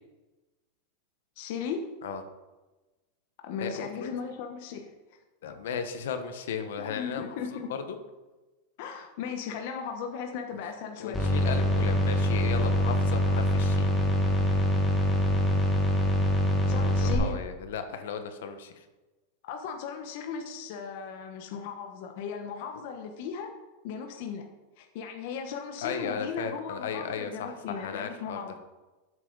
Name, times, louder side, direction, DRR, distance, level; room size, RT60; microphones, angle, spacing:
voice 1, 1.4-1.8 3.4-4.8 6.8-7.7 8.8-11.2 16.7-17.4 19.4-23.5 23.8-24.5 24.8-28.5, left 6 dB, 45° left, 4 dB, 1.0 m, -37 dB
voice 2, 3.6-4.1 5.4-7.4 7.7-8.0 11.0-13.9 16.7-18.8 25.8-28.6, left 6 dB, 70° left, 8 dB, 1.2 m, -35 dB
sound 1, 11.1-17.1, left 1 dB, 5° left, 1.6 m, -24 dB
13.0 x 8.2 x 4.0 m, 1.1 s
supercardioid pair, 180°, 0 cm